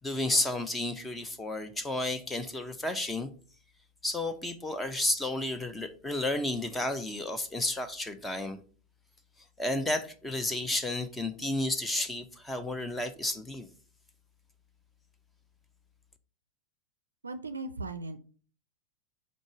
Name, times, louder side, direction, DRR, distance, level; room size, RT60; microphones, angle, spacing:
voice 1, 0.0-3.3 4.0-8.6 9.6-13.7, left 2 dB, 10° left, 0.5 m, -32 dB
voice 2, 17.2-18.2, right 3 dB, 75° right, 0.4 m, -37 dB
5.2 x 3.8 x 4.7 m
figure-of-eight pair, 90°, 0 cm